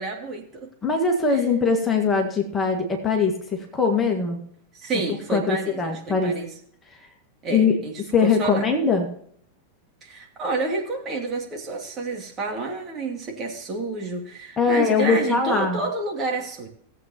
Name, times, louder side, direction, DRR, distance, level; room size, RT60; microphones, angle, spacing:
voice 1, 0.0-0.7 1.3-1.4 4.7-6.5 7.4-7.9 8.2-8.7 10.0-16.7, right 3 dB, 25° right, 0 dB, 2.7 m, -29 dB
voice 2, 0.8-4.4 5.3-6.4 7.5-7.8 8.1-9.1 14.6-15.8, left 4 dB, 15° left, 2 dB, 1.8 m, -21 dB
17.5 x 8.2 x 2.9 m, 0.63 s
figure-of-eight pair, 90°, 0 cm